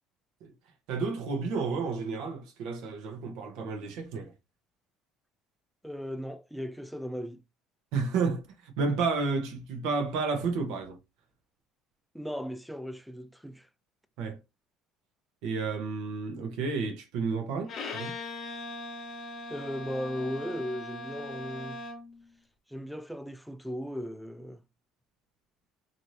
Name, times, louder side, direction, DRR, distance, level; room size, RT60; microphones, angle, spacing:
voice 1, 0.9-4.3 7.9-11.0 14.2-14.4 15.4-18.1, right 4 dB, 75° right, 0.8 m, -31 dB
voice 2, 5.8-7.4 12.1-13.7 19.5-21.8 22.7-24.6, equal, ahead, 0.3 m, -37 dB
Bowed string instrument, 17.7-22.2, left 2 dB, 40° left, 0.7 m, -40 dB
2.6 x 2.5 x 3.1 m
cardioid pair, 140°, 0 cm